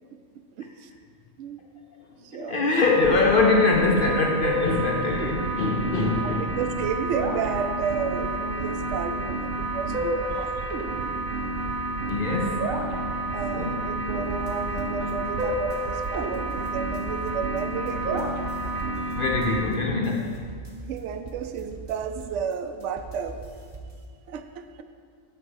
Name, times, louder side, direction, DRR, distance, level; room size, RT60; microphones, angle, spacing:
voice 1, 0.6-0.9 1.4-1.6 2.2-2.7 5.6-5.7 6.2-10.7 13.3-18.3 20.9-23.4 24.3-24.8, right 7 dB, 70° right, 8 dB, 0.9 m, -32 dB
voice 2, 2.3-6.6 12.1-12.8 13.5-13.8 19.2-20.4, left 3 dB, 50° left, 0 dB, 0.7 m, -23 dB
sound 1, 2.8-19.7, right 2 dB, 85° right, 1.3 m, -29 dB
sound 2, 14.2-24.0, right 2 dB, 30° right, 0.8 m, -43 dB
8.0 x 4.8 x 6.4 m, 2.1 s
omnidirectional pair, 1.4 m